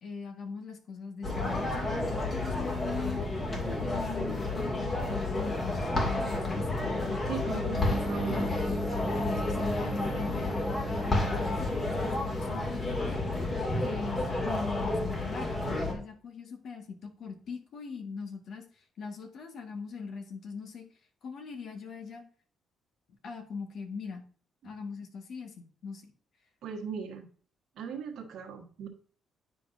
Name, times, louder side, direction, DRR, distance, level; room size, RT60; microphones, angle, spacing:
voice 1, 0.0-3.2 3.6-7.2 7.5-8.6 9.2-10.6 10.9-13.2 13.8-20.9 21.2-22.2 23.2-24.2 24.6-26.1, left 5 dB, 65° left, 5 dB, 1.5 m, -41 dB
sound 1, 1.2-15.9, left 2 dB, 35° left, 2.4 m, -31 dB
voice 2, 7.3-8.5 24.6-24.7 26.6-27.3 27.8-28.9, right 6 dB, 75° right, 1 dB, 1.3 m, -38 dB
sound 2, 7.8-13.1, right 2 dB, 30° right, 0.8 m, -38 dB
9.8 x 5.2 x 2.6 m, 0.44 s
cardioid pair, 90°, 0 cm